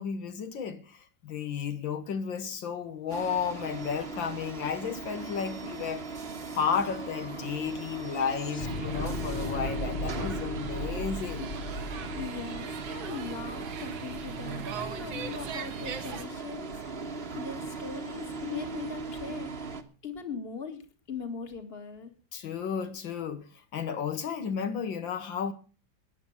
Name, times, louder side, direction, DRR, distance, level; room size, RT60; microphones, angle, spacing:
voice 1, 0.0-6.0 6.6-11.5 22.3-23.5 23.7-25.5, left 7 dB, 75° left, 2.0 m, -33 dB
sound 1, 3.1-19.8, right 3 dB, 35° right, 1.3 m, -39 dB
sound 2, 5.2-5.3 5.5-13.8, left 2 dB, 55° left, 0.5 m, -38 dB
sound 3, 8.6-16.3, right 6 dB, 85° right, 2.1 m, -41 dB
voice 2, 11.9-16.7 17.4-19.5 20.0-22.1, left 5 dB, 30° left, 2.0 m, -40 dB
14.0 x 9.9 x 7.1 m
omnidirectional pair, 2.1 m